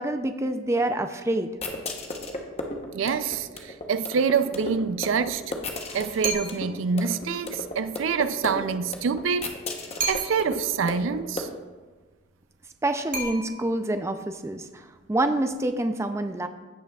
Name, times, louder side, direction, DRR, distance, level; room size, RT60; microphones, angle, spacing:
voice 1, 0.0-1.5 12.8-16.5, right 1 dB, 15° right, 0.4 m, -27 dB
sound 1, 1.5-11.4, left 2 dB, 30° left, 0.9 m, -36 dB
voice 2, 2.9-5.4 5.9-9.5 10.1-11.5, right 6 dB, 85° right, 0.4 m, -26 dB
sound 2, 6.2-6.9 10.0-10.7 13.1-13.9, right 3 dB, 45° right, 1.3 m, -32 dB
16.0 x 5.8 x 2.3 m
head